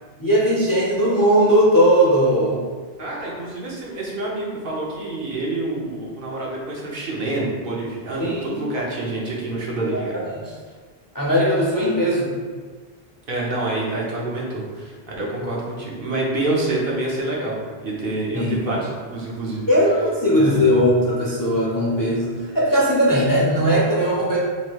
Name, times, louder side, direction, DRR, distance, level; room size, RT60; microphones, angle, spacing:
voice 1, 0.2-2.6 8.2-8.6 9.9-10.4 11.1-12.3 18.3-18.7 19.7-24.4, equal, 25° left, -6 dB, 0.5 m, -18 dB
voice 2, 3.0-10.3 13.3-19.7 20.4-20.6, right 2 dB, 60° right, -4 dB, 1.0 m, -27 dB
3.2 x 2.7 x 4.5 m, 1.5 s
omnidirectional pair, 1.1 m